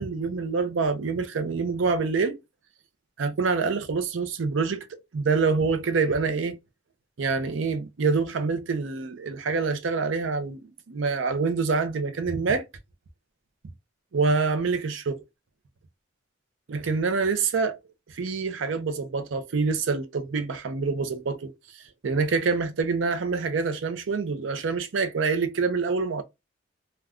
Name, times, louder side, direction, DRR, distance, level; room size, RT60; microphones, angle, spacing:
voice 1, 0.0-2.4 3.2-6.6 7.2-10.6 10.9-12.6 14.1-15.2 16.7-17.8 18.1-21.5 22.0-26.2, right 4 dB, 75° right, 0.5 m, -26 dB
2.4 x 2.2 x 3.4 m
head